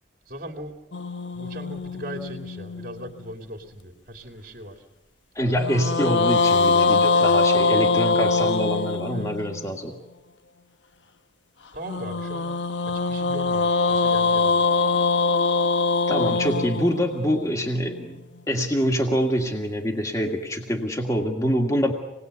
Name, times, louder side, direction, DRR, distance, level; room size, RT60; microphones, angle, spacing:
voice 1, 0.3-0.8 1.3-4.7 9.1-9.3 11.7-12.5 12.9-14.6, equal, 50° right, 5 dB, 2.7 m, -38 dB
sound 1, 0.9-3.3 5.6-9.7 11.9-18.1, left 4 dB, 70° left, 1.1 m, -23 dB
voice 2, 5.4-10.0 16.1-21.9, equal, 20° left, 2 dB, 2.0 m, -25 dB
26.5 x 20.0 x 8.2 m, 1.0 s
head